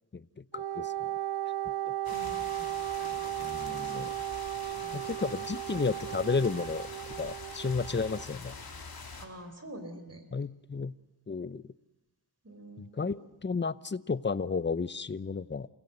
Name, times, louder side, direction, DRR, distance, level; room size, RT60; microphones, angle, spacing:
voice 1, 0.5-0.9 1.8-1.9 3.4-4.1 4.9-6.9 7.2-8.5 10.3-10.9 11.3-11.6 12.8-15.7, left 4 dB, 25° left, 17 dB, 0.7 m, -32 dB
Wind instrument woodwind instrument, 0.5-8.3, right 14 dB, 65° right, 0.9 m, -36 dB
sound 1, 2.0-9.3, left 4 dB, 60° left, 3.0 m, -44 dB
voice 2, 2.1-2.8 3.1-4.1 4.8-5.0 9.2-10.2 12.4-13.2, right 1 dB, 35° right, 6 dB, 3.9 m, -48 dB
28.5 x 16.5 x 8.0 m, 1.1 s
cardioid pair, 60°, 41 cm